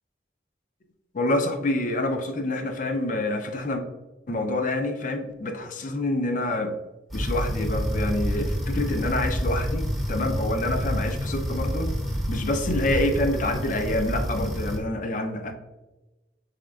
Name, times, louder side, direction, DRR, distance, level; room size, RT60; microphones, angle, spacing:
voice 1, 1.1-3.8 4.3-6.7 7.1-11.9 12.3-15.5, left 1 dB, 45° left, 7 dB, 0.5 m, -27 dB
sound 1, 7.1-14.8, equal, ahead, 0.6 m, -28 dB
4.9 x 4.1 x 2.3 m, 1.1 s
head